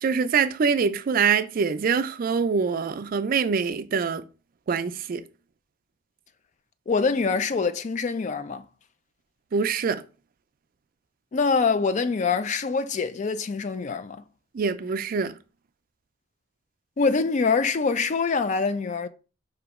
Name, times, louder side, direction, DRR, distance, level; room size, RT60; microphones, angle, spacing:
voice 1, 0.0-4.2 4.7-5.2 9.5-10.0 14.5-15.3, right 6 dB, 50° right, 0.4 m, -24 dB
voice 2, 6.9-8.7 11.3-14.2 17.0-19.1, left 4 dB, 40° left, 0.4 m, -24 dB
5.0 x 2.9 x 3.5 m
head